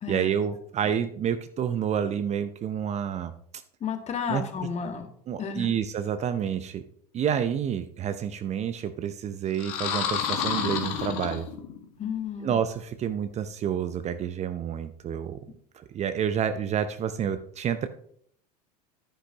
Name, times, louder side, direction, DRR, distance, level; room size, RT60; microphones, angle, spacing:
voice 1, 0.1-3.3 4.3-4.4 5.3-6.8 7.1-11.5 12.4-15.4 15.7-17.9, right 8 dB, 35° right, 11 dB, 0.7 m, -29 dB
voice 2, 3.8-5.1 5.4-5.7 12.0-12.6, left 6 dB, 35° left, 6 dB, 1.8 m, -32 dB
sound 1, 9.5-11.9, left 8 dB, 65° left, 1.8 m, -29 dB
10.0 x 10.0 x 2.9 m, 0.63 s
hypercardioid pair, 80°, 20 cm